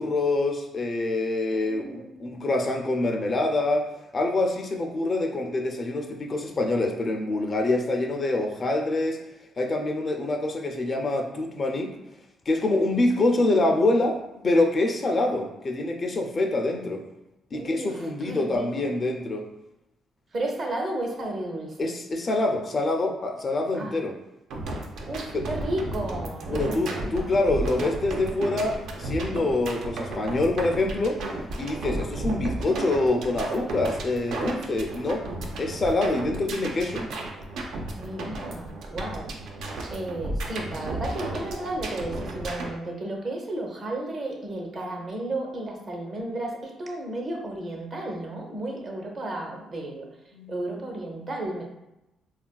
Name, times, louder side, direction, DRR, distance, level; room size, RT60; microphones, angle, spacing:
voice 1, 0.0-9.2 9.6-12.0 12.5-17.0 17.5-19.5 21.8-24.1 25.3-25.5 26.5-31.2 31.6-35.2 35.6-37.1 50.3-50.5, left 2 dB, 40° left, 3 dB, 0.4 m, -25 dB
voice 2, 1.5-2.5 17.5-18.8 20.3-21.8 23.7-24.0 25.1-27.3 38.0-39.3 39.9-50.1 50.5-51.6, right 1 dB, 45° right, 0 dB, 0.7 m, -33 dB
sound 1, 24.5-42.7, right 2 dB, 80° right, 0.4 m, -34 dB
3.5 x 2.4 x 2.2 m, 0.92 s
cardioid pair, 90°, 0 cm